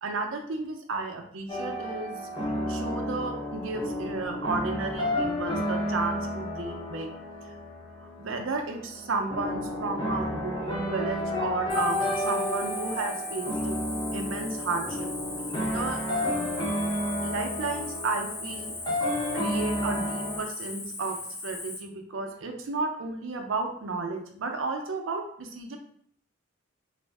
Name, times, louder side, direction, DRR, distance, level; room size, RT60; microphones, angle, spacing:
voice 1, 0.0-2.2 2.7-7.1 8.0-13.8 14.1-15.1 15.6-16.0 17.2-18.7 19.3-25.8, right 3 dB, 75° right, 4 dB, 0.5 m, -33 dB
sound 1, 1.5-20.4, left 1 dB, 20° left, 0.7 m, -31 dB
Cricket, 11.7-21.8, left 2 dB, 50° left, 0.8 m, -38 dB
2.4 x 2.0 x 3.3 m, 0.63 s
head